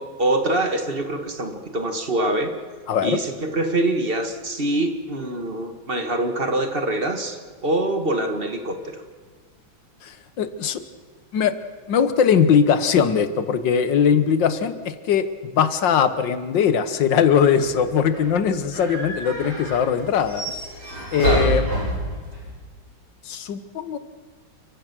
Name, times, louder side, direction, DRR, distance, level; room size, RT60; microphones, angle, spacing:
voice 1, 0.0-2.5 3.0-9.0 21.2-21.5, right 1 dB, 30° right, 6 dB, 1.8 m, -24 dB
voice 2, 10.0-10.8 11.3-11.5 11.9-15.3 15.5-20.6 21.1-21.7 23.3-24.0, left 7 dB, 65° left, 12 dB, 1.8 m, -20 dB
sound 1, 17.5-22.5, right 1 dB, 85° right, 9.0 m, -29 dB
30.0 x 15.0 x 6.1 m, 1.5 s
omnidirectional pair, 2.2 m